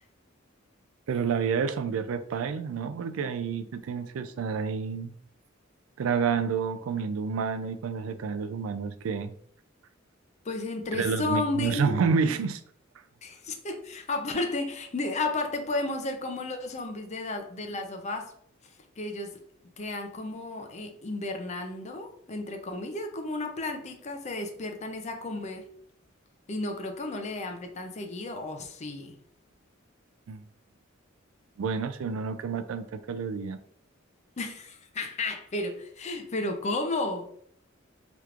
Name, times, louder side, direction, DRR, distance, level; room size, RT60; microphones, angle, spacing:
voice 1, 1.1-5.1 6.0-9.3 10.9-12.6 30.3-30.4 31.6-33.6, right 5 dB, 80° right, 11 dB, 0.3 m, -29 dB
voice 2, 10.4-11.9 13.2-18.3 19.0-19.4 19.8-25.7 26.5-29.2 34.4-37.3, left 2 dB, 35° left, 5 dB, 0.5 m, -33 dB
3.4 x 2.9 x 2.4 m, 0.64 s
head